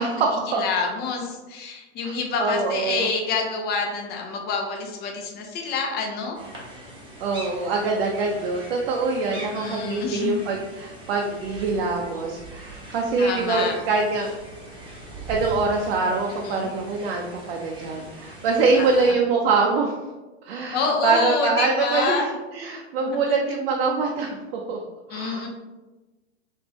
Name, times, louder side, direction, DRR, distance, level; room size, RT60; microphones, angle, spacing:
voice 1, 0.0-0.6 2.0-2.1 2.4-3.1 7.2-14.4 15.3-20.0 20.4-24.8 25.1-25.5, right 4 dB, 60° right, 0 dB, 0.6 m, -24 dB
voice 2, 0.5-6.4 9.3-10.4 13.2-13.8 16.4-16.7 18.8-19.2 20.7-22.2 23.0-23.2 25.1-25.5, left 4 dB, 30° left, 2 dB, 0.7 m, -27 dB
sound 1, 6.3-19.1, right 1 dB, 15° right, 1.0 m, -41 dB
3.5 x 3.1 x 3.0 m, 1.2 s
hypercardioid pair, 130°, 34 cm